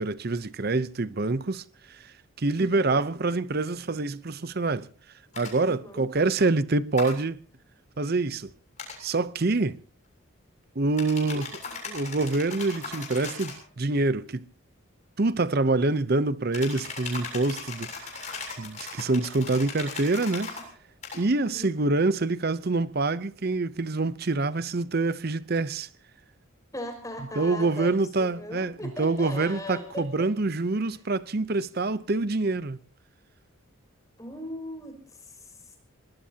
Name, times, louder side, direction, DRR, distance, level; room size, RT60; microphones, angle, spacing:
voice 1, 0.0-2.1 2.4-4.9 5.4-7.4 8.0-8.5 9.0-9.8 10.8-11.5 11.8-14.4 15.2-20.5 21.1-25.9 27.4-32.8, right 3 dB, 45° right, 0.7 m, -26 dB
voice 2, 2.6-3.0 5.7-6.1 21.4-21.7 26.7-30.3 34.2-35.8, left 1 dB, 15° left, 5.4 m, -39 dB
sound 1, 5.3-5.5 7.0-7.2 8.8-9.0 11.0-13.6 16.5-20.6 21.0-21.2, left 4 dB, 35° left, 7.2 m, -38 dB
23.5 x 21.0 x 2.9 m
head